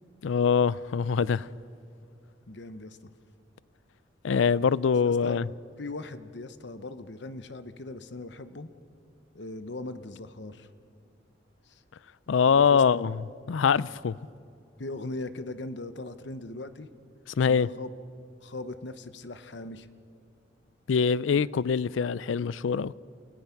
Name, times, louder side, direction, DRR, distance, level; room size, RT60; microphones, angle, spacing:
voice 1, 0.2-1.5 4.2-5.4 12.3-13.2 13.5-14.2 17.4-17.7 20.9-22.9, left 6 dB, 85° left, 0.4 m, -23 dB
voice 2, 2.5-3.1 5.0-5.4 5.8-8.7 9.3-10.7 11.6-11.8 12.5-12.8 14.8-16.9 17.5-17.9 18.4-19.9, left 2 dB, 65° left, 0.9 m, -39 dB
29.0 x 18.0 x 5.9 m
head